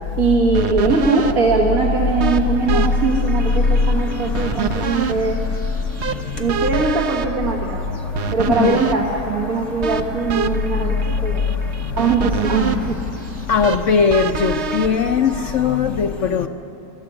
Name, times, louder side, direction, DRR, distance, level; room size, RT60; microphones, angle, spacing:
voice 1, 0.2-5.4 6.4-7.8 8.3-11.4 11.9-13.0, right 4 dB, 70° right, -1 dB, 2.1 m, -21 dB
sound 1, 0.5-15.8, right 5 dB, 55° right, 1.0 m, -27 dB
voice 2, 13.5-16.5, left 6 dB, 60° left, 5 dB, 1.0 m, -18 dB
22.5 x 14.0 x 9.9 m, 3.0 s
omnidirectional pair, 1.6 m